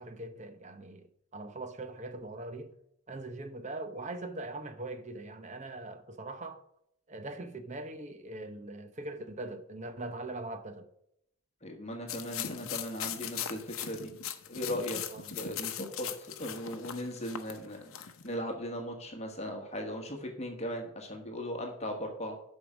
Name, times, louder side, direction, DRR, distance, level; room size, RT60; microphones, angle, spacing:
voice 1, 0.0-2.7 3.1-6.6 7.1-10.9 15.1-15.3, right 2 dB, 30° right, 0.8 m, -41 dB
voice 2, 11.6-14.1 14.5-15.0 15.3-22.3, equal, 30° left, 1.4 m, -38 dB
sound 1, 12.1-18.3, left 9 dB, 65° left, 0.8 m, -39 dB
8.2 x 5.5 x 6.1 m
head